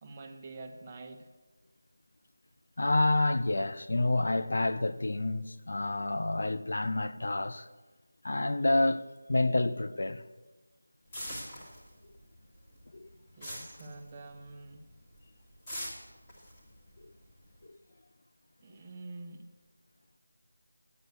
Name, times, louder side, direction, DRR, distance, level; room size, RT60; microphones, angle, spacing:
voice 1, 0.0-1.3 13.4-14.9 18.6-19.4, right 3 dB, 20° right, 0.7 m, -46 dB
voice 2, 2.8-7.7 8.2-10.2 12.9-13.1 17.0-17.1 17.7-17.8, left 2 dB, 60° left, 0.6 m, -29 dB
sound 1, 11.1-12.3 12.5-14.6 14.9-15.2 15.7-17.6, equal, 15° left, 1.9 m, -42 dB
9.6 x 7.9 x 8.0 m
figure-of-eight pair, 170°, 0 cm